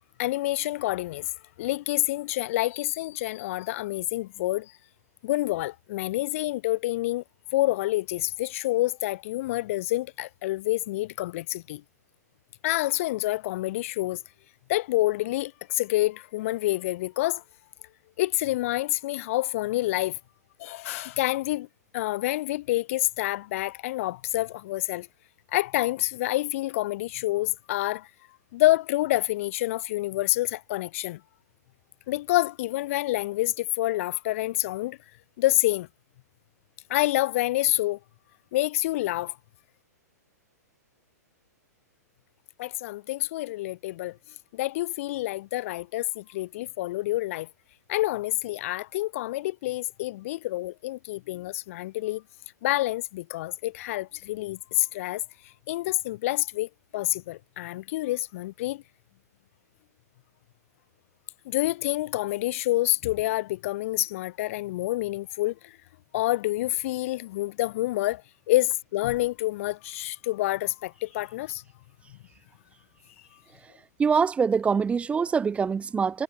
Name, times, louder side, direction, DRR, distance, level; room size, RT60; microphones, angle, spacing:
voice 1, 0.2-1.3 1.6-4.7 5.2-7.2 7.5-11.8 12.6-14.2 14.7-17.4 18.2-20.2 20.6-21.7 21.9-25.1 25.5-28.1 28.5-31.2 32.1-35.0 35.4-35.9 36.9-38.0 38.5-39.4 42.6-44.2 44.5-47.5 47.9-52.2 52.6-55.2 55.7-58.8 61.5-65.8 66.1-68.2 68.5-71.6, left 17 dB, 50° left, 0.4 m, -27 dB
voice 2, 74.0-76.2, right 6 dB, 15° right, 0.6 m, -24 dB
hypercardioid pair, 120°, 9 cm